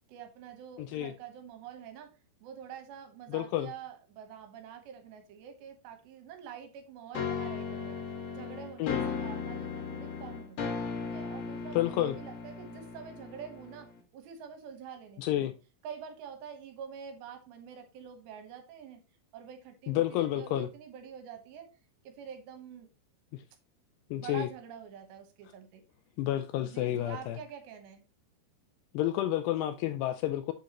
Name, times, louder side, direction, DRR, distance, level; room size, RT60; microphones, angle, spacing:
voice 1, 0.1-2.1 2.4-15.5 15.8-19.0 19.3-21.8 22.0-22.9 24.1-25.8 26.6-28.0, right 8 dB, 75° right, 3.3 m, -46 dB
voice 2, 0.8-1.1 3.3-3.7 8.8-9.0 11.8-12.1 15.2-15.5 19.9-20.7 23.3-23.4 24.1-24.5 26.2-27.4 28.9-30.5, left 13 dB, 85° left, 2.4 m, -30 dB
sound 1, 7.1-14.0, left 5 dB, 65° left, 1.6 m, -37 dB
7.9 x 6.5 x 2.9 m
omnidirectional pair, 5.2 m